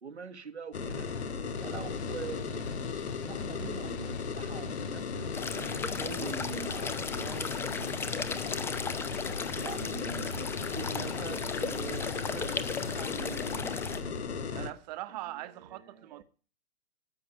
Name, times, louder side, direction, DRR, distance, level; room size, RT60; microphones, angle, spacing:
voice 1, 0.0-1.1 1.4-2.7 3.1-8.1 8.5-8.9 9.6-14.2 15.1-16.2, right 6 dB, 90° right, 1.6 m, -44 dB
sound 1, 0.7-14.7, left 5 dB, 75° left, 1.8 m, -36 dB
sound 2, 1.5-13.3, left 9 dB, 25° left, 1.9 m, -55 dB
sound 3, 5.3-14.0, left 5 dB, 5° left, 0.6 m, -37 dB
voice 2, 14.5-16.2, right 16 dB, 40° right, 1.1 m, -41 dB
13.5 x 6.8 x 9.0 m
hypercardioid pair, 130°, 33 cm